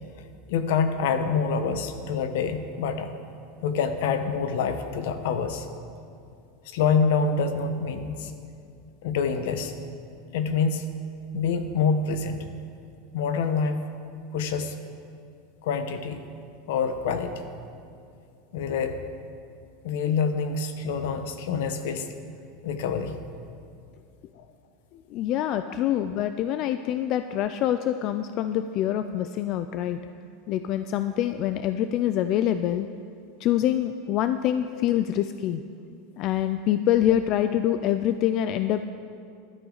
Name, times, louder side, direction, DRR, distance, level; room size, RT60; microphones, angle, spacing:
voice 1, 0.5-3.2 3.6-5.7 6.6-8.3 9.0-9.7 10.3-10.9 11.3-12.5 13.1-13.9 14.3-14.7 15.6-16.2 16.7-17.4 18.5-19.0 19.8-22.1 22.6-23.2, left 5 dB, 65° left, 8 dB, 1.0 m, -26 dB
voice 2, 25.1-30.0 30.5-32.9 33.4-35.6 36.2-38.8, left 11 dB, 35° left, 10 dB, 0.3 m, -25 dB
15.5 x 12.0 x 3.9 m, 2.5 s
supercardioid pair, 170°, 0 cm